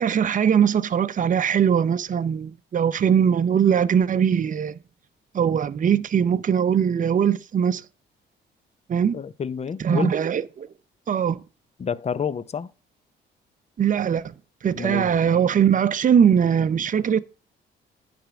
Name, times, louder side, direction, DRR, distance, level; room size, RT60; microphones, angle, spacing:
voice 1, 0.0-4.8 5.3-7.8 8.9-9.1 9.8-10.7 11.1-11.4 13.8-14.3 14.6-17.2, right 8 dB, 40° right, 0.6 m, -21 dB
voice 2, 9.1-10.2 11.8-12.7 14.8-15.1, left 7 dB, 35° left, 0.5 m, -29 dB
10.0 x 3.5 x 6.8 m
cardioid pair, 90°, 20 cm